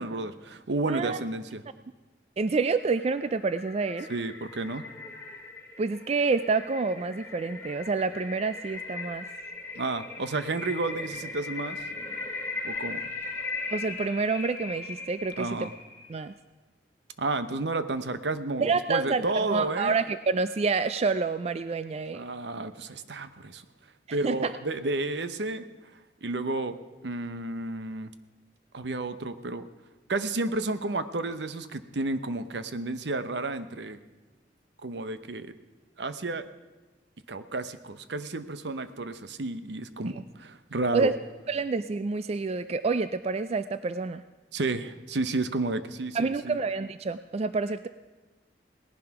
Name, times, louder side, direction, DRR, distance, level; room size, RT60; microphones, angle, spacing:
voice 1, 0.0-1.6 4.1-4.9 9.7-11.8 12.6-13.0 15.4-15.7 17.2-20.0 22.1-23.6 24.1-25.6 26.2-26.8 27.0-28.1 28.7-29.6 30.1-34.0 34.8-35.5 36.0-36.4 37.3-41.1 44.5-46.6, right 2 dB, 70° right, 12 dB, 0.8 m, -31 dB
voice 2, 0.9-1.2 2.4-4.1 5.8-9.2 13.7-15.7 16.1-16.3 18.6-19.2 19.5-22.3 24.1-24.6 40.9-41.1 41.5-44.2 46.1-47.9, right 4 dB, 35° right, 12 dB, 0.4 m, -28 dB
sound 1, 2.7-16.1, left 3 dB, 15° left, 2.1 m, -39 dB
18.0 x 11.0 x 5.9 m, 1.2 s
head